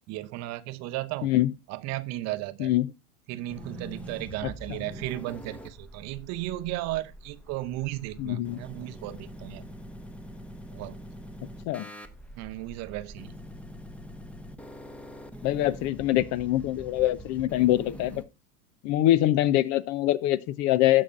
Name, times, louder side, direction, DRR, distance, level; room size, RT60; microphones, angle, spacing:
voice 1, 0.1-1.3 1.7-2.7 3.3-9.7 10.7-11.0 12.4-13.3, right 16 dB, 40° right, 0.8 m, -35 dB
voice 2, 1.2-1.5 2.6-2.9 8.2-8.6 11.7-11.8 15.4-18.2 18.8-21.0, left 14 dB, 40° left, 0.7 m, -24 dB
sound 1, 3.5-18.2, equal, 5° left, 0.9 m, -44 dB
17.5 x 5.9 x 2.5 m
hypercardioid pair, 105°, 42 cm